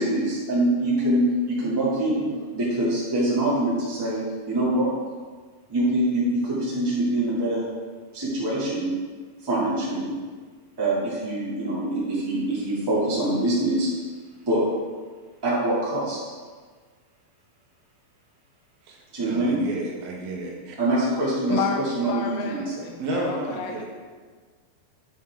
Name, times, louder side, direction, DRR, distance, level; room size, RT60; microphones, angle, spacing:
voice 1, 0.0-2.2 2.5-4.9 5.7-7.6 8.1-8.9 9.4-10.1 10.8-13.9 14.4-14.6 15.4-16.2 19.1-19.6 20.8-22.8, right 1 dB, 10° right, -9 dB, 1.4 m, -24 dB
voice 2, 18.9-20.8 23.0-23.9, right 2 dB, 90° right, -1 dB, 2.8 m, -32 dB
voice 3, 21.5-23.9, left 6 dB, 80° left, 3 dB, 2.2 m, -31 dB
8.7 x 5.7 x 3.6 m, 1.5 s
omnidirectional pair, 4.2 m